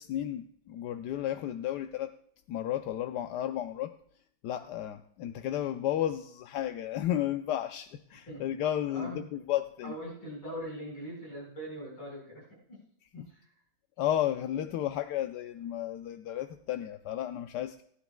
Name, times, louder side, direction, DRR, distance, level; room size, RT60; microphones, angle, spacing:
voice 1, 0.0-2.2 2.5-3.9 4.4-9.9 13.2-13.3 14.0-17.8, left 11 dB, 70° left, 8 dB, 1.1 m, -33 dB
voice 2, 9.8-12.8 13.1-13.5, equal, 85° left, -2 dB, 5.7 m, -42 dB
19.5 x 11.5 x 2.2 m, 0.66 s
omnidirectional pair, 2.2 m